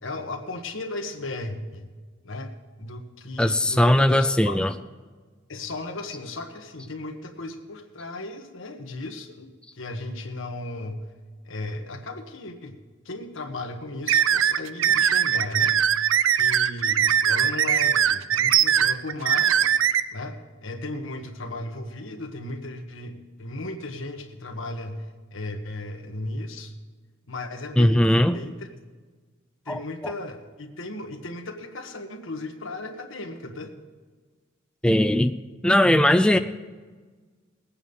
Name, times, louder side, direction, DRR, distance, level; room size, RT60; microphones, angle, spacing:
voice 1, 0.0-1.9 2.2-2.5 2.8-4.6 5.5-11.0 11.4-12.8 13.0-19.7 20.1-26.7 27.3-28.7 29.6-33.8 36.3-36.4, left 2 dB, 75° left, 5 dB, 1.4 m, -36 dB
voice 2, 3.4-4.7 27.8-28.4 29.7-29.8 34.8-35.4 35.6-36.4, left 1 dB, 5° left, 7 dB, 0.3 m, -19 dB
sound 1, 14.1-20.0, right 9 dB, 75° right, 0.5 m, -21 dB
19.5 x 8.7 x 5.5 m, 1.4 s
head